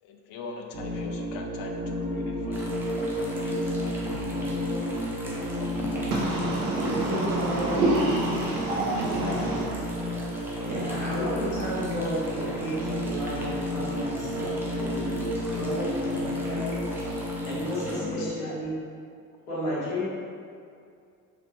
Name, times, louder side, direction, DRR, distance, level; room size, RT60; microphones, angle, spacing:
voice 1, 0.0-2.8 3.1-4.8 5.2-6.1 9.2-9.9 18.0-18.3, left 4 dB, 50° left, 3 dB, 0.5 m, -42 dB
sound 1, 0.7-18.3, equal, 35° right, 0.8 m, -31 dB
sound 2, 2.5-18.0, equal, 5° right, 0.5 m, -41 dB
voice 2, 6.1-9.6, right 2 dB, 80° right, -5 dB, 0.7 m, -27 dB
voice 3, 6.6-7.8 10.6-16.9 17.4-18.7 19.5-20.0, equal, 75° left, -11 dB, 1.4 m, -33 dB
3.1 x 2.5 x 3.0 m, 2.3 s
figure-of-eight pair, 50°, 45 cm